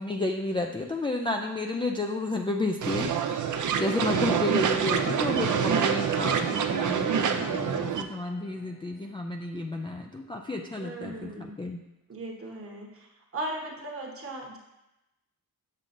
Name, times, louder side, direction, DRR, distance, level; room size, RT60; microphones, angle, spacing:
voice 1, 0.0-11.8, left 2 dB, 15° left, 1 dB, 0.3 m, -31 dB
sound 1, 2.8-8.0, right 7 dB, 55° right, 0.5 m, -26 dB
Electric guitar, 4.8-10.9, equal, 5° right, 0.8 m, -46 dB
voice 2, 10.8-11.6 12.1-14.6, right 1 dB, 40° right, 0 dB, 1.1 m, -38 dB
7.5 x 6.2 x 2.6 m, 0.94 s
wide cardioid pair, 135°, 37 cm